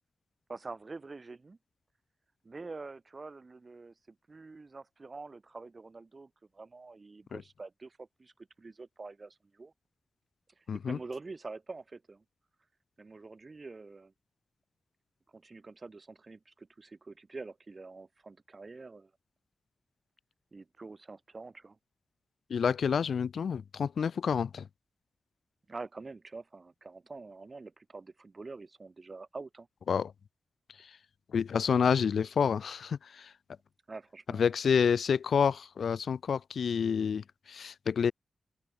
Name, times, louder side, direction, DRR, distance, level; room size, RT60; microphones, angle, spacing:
voice 1, 0.5-1.6 2.4-8.3 8.6-9.7 10.6-12.2 13.0-14.1 15.3-19.1 20.5-21.8 25.7-29.7 33.9-34.5, right 3 dB, 35° right, 1.8 m, -46 dB
voice 2, 10.7-11.0 22.5-24.7 29.9-30.1 31.3-33.3 34.3-38.1, left 6 dB, 85° left, 0.8 m, -28 dB
open air
wide cardioid pair, 105°, 0 cm